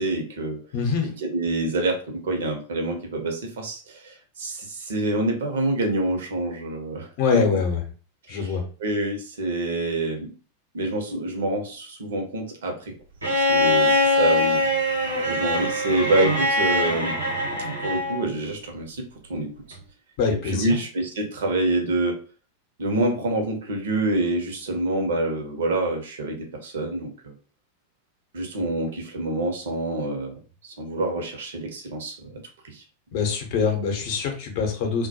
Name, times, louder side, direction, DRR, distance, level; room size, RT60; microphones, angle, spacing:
voice 1, 0.0-0.6 1.2-7.4 8.3-10.3 10.7-12.9 13.4-14.6 15.3-17.2 17.8-19.8 20.4-22.2 22.8-27.3 28.3-30.3 30.6-32.8, right 2 dB, 60° right, 3 dB, 0.6 m, -27 dB
voice 2, 0.7-1.1 7.2-7.8 8.3-8.6 20.2-20.8 33.1-35.1, left 5 dB, 50° left, 3 dB, 0.6 m, -24 dB
Bowed string instrument, 13.2-18.3 19.7-19.8, left 1 dB, 80° right, 0.9 m, -22 dB
2.1 x 2.1 x 2.7 m, 0.37 s
figure-of-eight pair, 90°, 0 cm